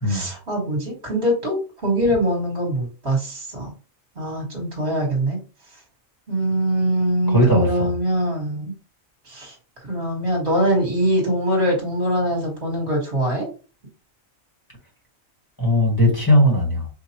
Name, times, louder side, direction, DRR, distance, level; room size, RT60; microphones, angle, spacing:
voice 1, 0.0-3.7 4.2-5.4 6.3-8.7 9.3-9.5 9.8-13.5, right 1 dB, 40° right, -1 dB, 2.0 m, -23 dB
voice 2, 7.3-7.9 15.6-16.9, equal, 15° left, -1 dB, 1.4 m, -18 dB
4.9 x 2.6 x 2.9 m, 0.34 s
omnidirectional pair, 1.4 m